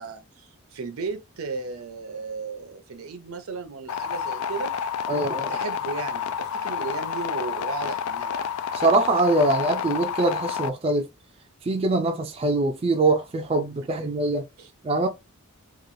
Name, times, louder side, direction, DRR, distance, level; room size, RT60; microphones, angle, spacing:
voice 1, 0.0-4.7 5.1-8.4 13.9-14.1 14.6-14.7, right 4 dB, 80° right, 0.6 m, -35 dB
sound 1, 3.9-10.7, left 7 dB, 80° left, 0.3 m, -29 dB
voice 2, 5.1-5.5 8.7-11.1 11.7-14.4 14.8-15.1, right 2 dB, 25° right, 0.3 m, -23 dB
3.0 x 2.3 x 2.5 m
head